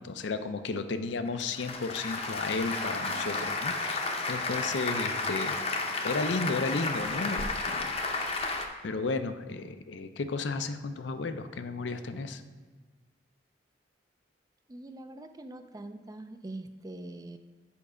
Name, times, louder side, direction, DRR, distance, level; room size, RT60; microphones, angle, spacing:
voice 1, 0.0-4.0 4.3-5.6 6.0-8.0 8.8-12.4, left 3 dB, 70° left, 9 dB, 0.5 m, -33 dB
Applause, 1.3-8.7, left 3 dB, 35° left, 0.7 m, -32 dB
voice 2, 14.7-17.4, right 2 dB, 20° right, 8 dB, 0.3 m, -43 dB
7.0 x 5.2 x 4.9 m, 1.4 s
head